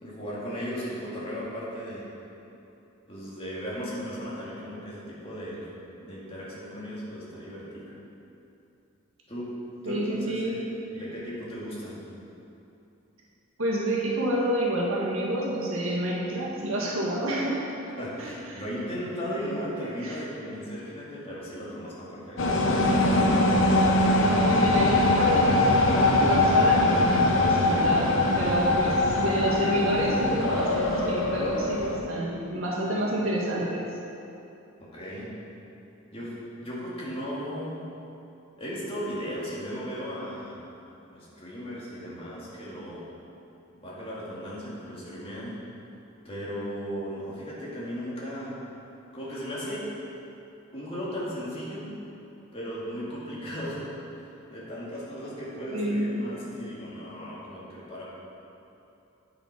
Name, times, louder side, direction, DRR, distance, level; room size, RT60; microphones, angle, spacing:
voice 1, 0.0-2.1 3.1-5.7 6.0-7.9 9.3-9.5 9.8-10.6 10.9-12.0 18.0-22.4 34.8-35.3 36.1-37.9 38.6-40.6 41.1-43.1 43.7-45.6 46.2-48.6 49.1-49.9 50.7-51.9 52.5-53.8 54.1-54.2 54.5-58.0, equal, 25° left, -7 dB, 1.9 m, -36 dB
voice 2, 9.8-10.7 13.6-17.7 18.2-18.6 20.0-20.2 24.1-33.8 55.7-56.2, right 1 dB, 80° right, -4 dB, 1.6 m, -29 dB
sound 1, 22.4-32.0, left 2 dB, 65° left, 0.9 m, -22 dB
8.9 x 7.0 x 4.8 m, 2.8 s
head